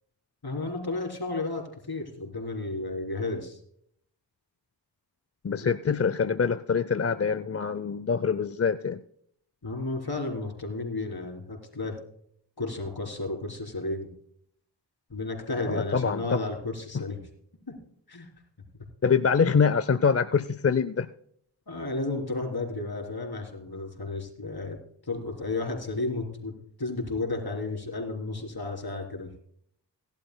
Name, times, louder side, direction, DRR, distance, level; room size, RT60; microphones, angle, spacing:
voice 1, 0.4-3.6 5.6-5.7 9.6-12.0 12.6-14.1 15.1-17.2 17.7-17.8 18.1-18.3 21.7-24.8 25.0-26.5 26.8-29.4, left 2 dB, 60° left, 3 dB, 3.6 m, -33 dB
voice 2, 5.4-9.0 15.7-16.4 16.9-17.0 19.0-21.1, left 6 dB, 35° left, 13 dB, 0.5 m, -25 dB
18.5 x 11.5 x 2.2 m, 0.65 s
wide cardioid pair, 40°, 43 cm